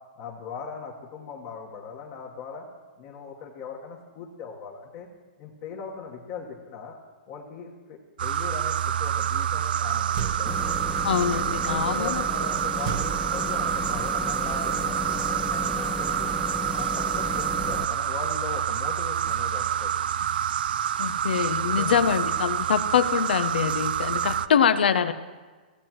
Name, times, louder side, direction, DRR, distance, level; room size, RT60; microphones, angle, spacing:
voice 1, 0.2-2.6 3.0-5.1 5.4-7.0 7.3-10.7 11.6-16.4 16.7-19.9 21.7-22.0, left 6 dB, 40° left, -2 dB, 1.3 m, -39 dB
sound 1, 8.2-24.5, right 9 dB, 70° right, 0.3 m, -27 dB
sound 2, 10.2-10.8 12.8-13.9, right 8 dB, 40° right, 0.7 m, -33 dB
sound 3, 10.5-17.8, left 2 dB, 5° left, 0.3 m, -35 dB
voice 2, 11.0-12.2 21.0-25.1, left 8 dB, 80° left, 12 dB, 0.6 m, -24 dB
16.5 x 7.8 x 3.0 m, 1.4 s
hypercardioid pair, 150°, 5 cm